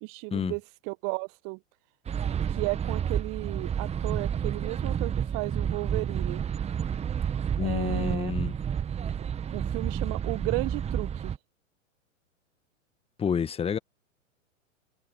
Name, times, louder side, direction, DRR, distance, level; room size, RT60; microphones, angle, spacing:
voice 1, 0.0-1.6 2.5-6.4 7.6-8.3 9.5-11.3, right 33 dB, 35° right, 1.3 m, -34 dB
sound 1, 2.1-11.4, right 8 dB, 15° right, 1.8 m, -30 dB
voice 2, 7.6-8.5 13.2-13.8, left 7 dB, 15° left, 1.6 m, -29 dB
figure-of-eight pair, 105°, 39 cm